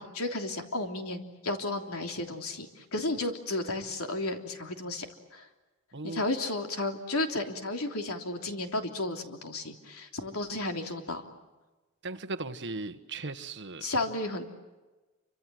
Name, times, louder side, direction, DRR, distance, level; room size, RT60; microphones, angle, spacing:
voice 1, 0.0-5.1 5.3-5.5 6.0-11.3 13.8-14.6, left 2 dB, 90° left, 4 dB, 3.3 m, -33 dB
voice 2, 5.9-6.2 12.0-13.8, right 3 dB, 55° right, 10 dB, 1.4 m, -37 dB
29.0 x 25.5 x 7.8 m, 1.2 s
head